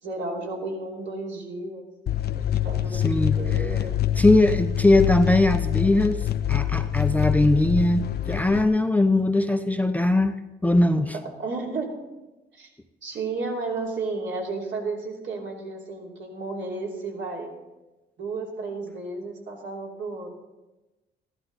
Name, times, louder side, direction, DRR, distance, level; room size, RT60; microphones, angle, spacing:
voice 1, 0.0-1.8 2.3-3.9 11.4-11.9 12.5-12.7 13.0-17.5 18.2-20.3, right 3 dB, 65° right, -2 dB, 3.2 m, -33 dB
sound 1, 2.1-8.6, left 11 dB, 55° left, 0.6 m, -25 dB
voice 2, 2.9-3.7 4.2-10.3 10.6-11.2, left 2 dB, 10° left, 9 dB, 0.6 m, -21 dB
14.5 x 11.5 x 4.1 m, 1.1 s
cardioid pair, 90°, 20 cm